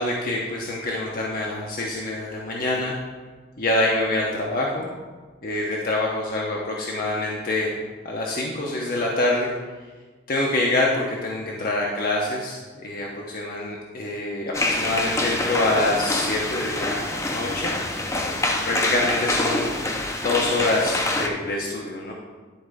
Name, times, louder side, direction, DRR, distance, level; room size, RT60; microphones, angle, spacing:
voice 1, 0.0-2.9 3.6-4.9 5.4-7.7 8.0-9.5 10.3-17.7 18.7-19.7 20.2-22.1, left 2 dB, 50° left, -2 dB, 0.9 m, -25 dB
sound 1, 14.5-21.3, left 2 dB, 15° left, 0.6 m, -26 dB
10.5 x 4.2 x 4.9 m, 1.4 s
head